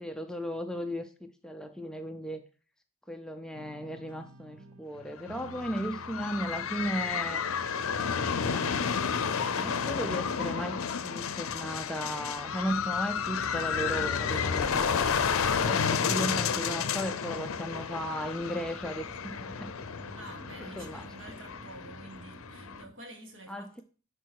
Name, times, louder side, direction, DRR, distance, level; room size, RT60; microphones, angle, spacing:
voice 1, 0.0-2.4 3.1-7.4 9.5-15.2 15.6-19.7 20.6-21.1 23.5-23.8, equal, 5° left, 0.4 m, -36 dB
sound 1, 3.5-15.5, right 2 dB, 75° right, 0.8 m, -50 dB
sound 2, 5.2-22.8, left 6 dB, 75° left, 0.6 m, -31 dB
voice 2, 16.0-16.3 20.2-23.8, right 2 dB, 60° right, 1.9 m, -49 dB
sound 3, 17.8-22.9, right 2 dB, 25° right, 4.0 m, -51 dB
10.5 x 4.5 x 4.6 m
head